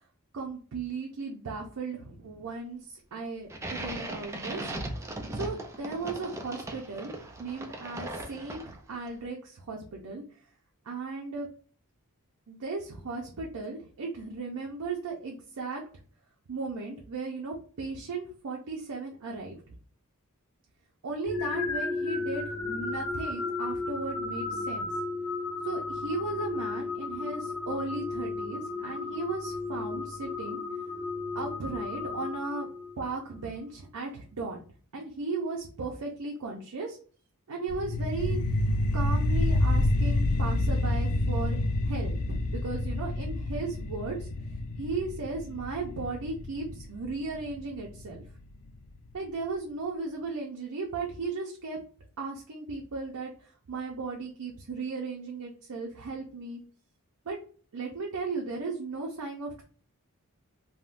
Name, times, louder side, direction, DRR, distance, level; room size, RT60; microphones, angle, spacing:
voice 1, 0.3-4.7 5.3-7.1 7.4-10.2 10.8-11.5 12.5-15.8 16.5-19.6 21.0-24.9 25.6-30.6 31.3-32.7 33.0-34.7 34.9-37.0 37.5-44.3 44.7-48.2 49.1-51.8 52.2-56.6 57.3-57.4 57.7-59.6, right 3 dB, 80° right, 0 dB, 0.5 m, -36 dB
sound 1, 3.5-9.0, right 1 dB, 10° right, 0.3 m, -38 dB
sound 2, 21.2-33.2, left 3 dB, 60° left, 0.9 m, -34 dB
sound 3, 37.7-48.7, left 1 dB, 80° left, 0.3 m, -28 dB
3.5 x 2.1 x 2.4 m, 0.43 s
head